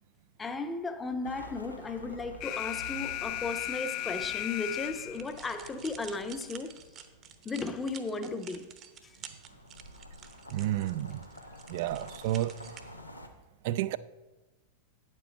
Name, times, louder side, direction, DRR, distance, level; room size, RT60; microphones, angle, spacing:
voice 1, 0.4-6.8 7.4-8.7 9.0-9.2, left 3 dB, 15° left, 0.8 m, -35 dB
sound 1, 1.2-7.7 8.8-13.3, equal, 85° left, 0.9 m, -50 dB
Alarm, 2.4-5.4, left 14 dB, 40° left, 0.4 m, -35 dB
sound 2, 5.1-12.8, right 8 dB, 30° right, 0.8 m, -50 dB
voice 2, 10.5-11.2 11.7-12.6 13.6-14.0, right 14 dB, 50° right, 0.3 m, -30 dB
9.2 x 7.5 x 4.4 m
figure-of-eight pair, 90°, 0 cm